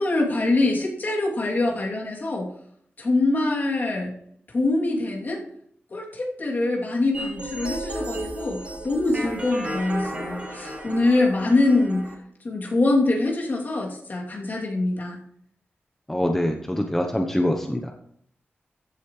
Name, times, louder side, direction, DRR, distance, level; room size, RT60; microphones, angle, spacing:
voice 1, 0.0-2.5 3.0-4.1 4.5-5.4 5.9-12.1 12.4-15.2, left 2 dB, 50° left, -2 dB, 3.0 m, -24 dB
sound 1, 7.1-12.1, right 1 dB, 30° right, 3.2 m, -33 dB
voice 2, 16.1-17.9, left 1 dB, 10° left, 3 dB, 0.9 m, -24 dB
14.5 x 8.1 x 3.3 m, 0.65 s
wide cardioid pair, 120°, 4 cm